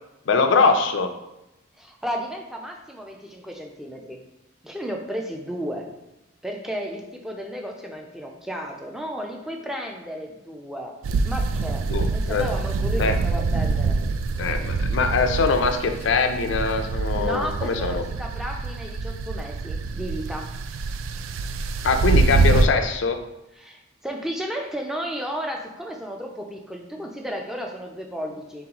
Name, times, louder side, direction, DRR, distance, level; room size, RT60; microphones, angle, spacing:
voice 1, 0.3-1.1 11.9-12.4 13.0-13.2 14.4-18.0 21.8-23.2, left 4 dB, 70° left, 7 dB, 0.4 m, -22 dB
voice 2, 1.8-4.2 4.6-5.9 6.4-11.0 11.2-11.8 12.1-14.0 17.1-20.5 23.5-28.7, equal, ahead, 1 dB, 0.4 m, -33 dB
sound 1, 11.0-22.7, right 4 dB, 85° right, 0.3 m, -25 dB
3.9 x 3.9 x 2.9 m, 0.91 s
head